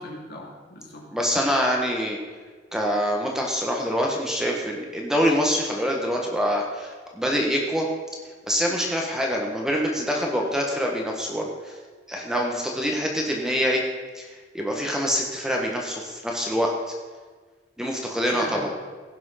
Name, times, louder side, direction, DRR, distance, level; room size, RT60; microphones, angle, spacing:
voice 1, 0.0-1.1 18.0-18.7, left 1 dB, 55° left, -1 dB, 2.6 m, -39 dB
voice 2, 1.1-2.2 2.7-7.9 8.5-11.7 12.1-13.8 14.1-14.3 14.5-16.9 17.8-18.7, equal, 5° right, -1 dB, 1.4 m, -25 dB
16.0 x 6.1 x 5.8 m, 1.4 s
head